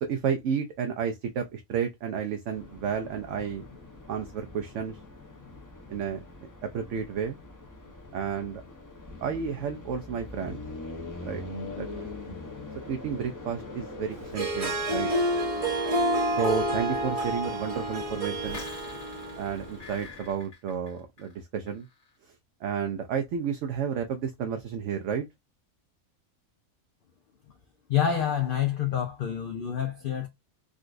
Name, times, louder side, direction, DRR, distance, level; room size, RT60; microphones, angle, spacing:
voice 1, 0.0-3.6 4.1-5.0 5.9-6.2 6.6-7.4 8.1-8.6 9.2-10.6 11.2-11.4 11.8-12.1 12.9-15.1 16.4-18.6 19.4-21.9 22.6-25.2, right 7 dB, 70° right, 0.8 m, -31 dB
sound 1, 2.5-20.3, left 2 dB, 20° left, 0.6 m, -43 dB
Harp, 14.2-19.7, right 1 dB, 35° right, 0.7 m, -29 dB
sound 2, 18.3-21.4 21.7-22.1, left 3 dB, 85° left, 1.6 m, -46 dB
voice 2, 27.9-30.3, left 9 dB, 65° left, 0.5 m, -27 dB
3.8 x 2.4 x 2.4 m
omnidirectional pair, 1.4 m